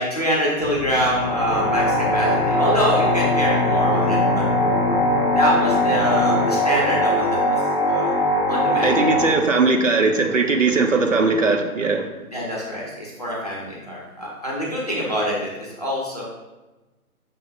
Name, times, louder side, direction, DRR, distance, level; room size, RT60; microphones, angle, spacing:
voice 1, 0.0-1.8 2.1-4.4 5.4-7.4 7.9-8.1 8.5-9.1 12.3-16.2, equal, 25° left, -5 dB, 0.6 m, -25 dB
sound 1, 0.6-6.5, left 5 dB, 65° left, 0.7 m, -27 dB
sound 2, 0.9-9.3, equal, 5° right, 0.8 m, -21 dB
voice 2, 8.8-12.1, right 3 dB, 55° right, 4 dB, 0.5 m, -19 dB
5.2 x 2.1 x 4.1 m, 1.1 s
figure-of-eight pair, 150°, 45 cm